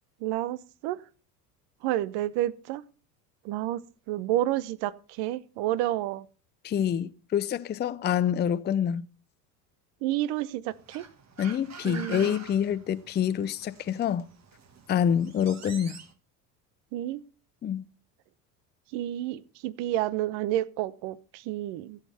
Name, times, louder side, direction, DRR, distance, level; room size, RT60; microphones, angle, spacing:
voice 1, 0.2-1.0 1.8-2.8 3.4-3.8 4.1-6.3 10.0-11.1 11.8-12.3 16.9-17.2 18.9-22.0, right 14 dB, 60° right, 0.9 m, -30 dB
voice 2, 6.6-9.1 11.4-14.3 14.9-16.0 17.6-17.8, left 9 dB, 20° left, 0.5 m, -27 dB
sound 1, 10.7-16.1, right 6 dB, 35° right, 1.8 m, -47 dB
16.0 x 7.6 x 4.3 m
hypercardioid pair, 75°, 48 cm